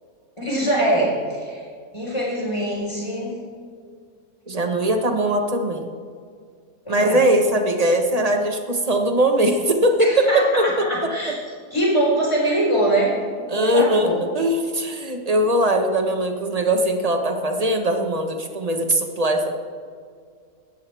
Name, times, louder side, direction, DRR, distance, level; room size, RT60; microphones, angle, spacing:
voice 1, 0.4-1.6 1.9-3.4 6.9-7.2 10.0-11.3 11.7-13.2 13.5-14.3, right 1 dB, 20° left, -3 dB, 4.5 m, -23 dB
voice 2, 4.5-5.9 6.9-11.1 13.5-19.5, right 1 dB, 25° right, 4 dB, 1.4 m, -20 dB
18.0 x 13.0 x 3.5 m, 2.1 s
omnidirectional pair, 1.5 m